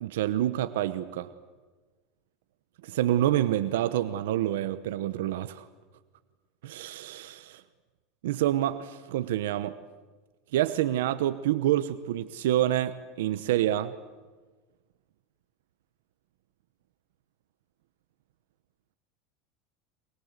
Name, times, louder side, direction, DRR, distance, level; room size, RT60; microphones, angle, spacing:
voice 1, 0.0-1.3 2.8-5.6 6.6-7.6 8.2-9.7 10.5-13.9, right 13 dB, 90° right, 12 dB, 0.9 m, -27 dB
23.5 x 22.5 x 8.1 m, 1.3 s
supercardioid pair, 150°, 0 cm